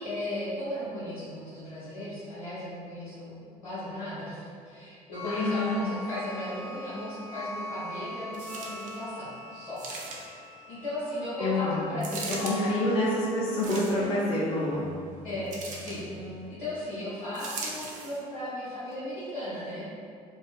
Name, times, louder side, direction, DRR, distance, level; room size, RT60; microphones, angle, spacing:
voice 1, 0.0-10.2 10.7-12.9 15.2-20.1, left 1 dB, 75° left, -13 dB, 0.7 m, -36 dB
sound 1, 5.1-16.5, right 2 dB, 10° right, 0.9 m, -40 dB
voice 2, 5.3-5.9 11.4-12.0 12.3-14.9, left 2 dB, 25° left, -7 dB, 0.4 m, -28 dB
sound 2, 8.3-9.0 9.8-10.5 12.0-12.6 13.5-14.2 15.5-16.0 17.3-18.2 18.9-19.0, right 3 dB, 40° right, 0.4 m, -39 dB
2.4 x 2.2 x 2.3 m, 2.3 s
figure-of-eight pair, 50°, 20 cm